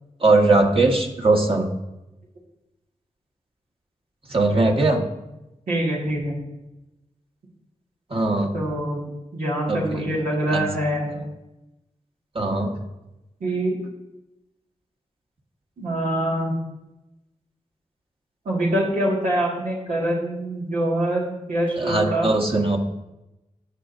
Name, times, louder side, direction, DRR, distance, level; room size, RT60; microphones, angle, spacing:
voice 1, 0.2-1.7 4.3-5.0 8.1-8.5 9.7-10.1 10.5-10.6 12.3-12.7 21.8-22.8, right 2 dB, 45° right, 1 dB, 1.5 m, -20 dB
voice 2, 5.7-6.4 8.5-9.0 9.3-11.2 13.4-13.8 15.8-16.6 18.5-22.3, right 1 dB, 90° right, -5 dB, 2.0 m, -24 dB
15.0 x 5.2 x 2.7 m, 0.95 s
cardioid pair, 45°, 14 cm